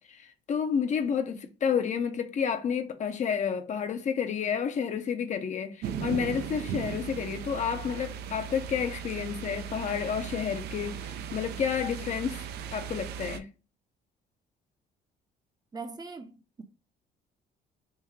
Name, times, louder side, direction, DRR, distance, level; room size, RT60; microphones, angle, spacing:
voice 1, 0.1-13.5, left 7 dB, 45° left, 0.6 m, -30 dB
sound 1, 5.8-13.4, right 8 dB, 75° right, 0.5 m, -37 dB
voice 2, 15.7-16.6, right 4 dB, 25° right, 0.6 m, -41 dB
3.6 x 2.7 x 3.1 m
cardioid pair, 110°, 17 cm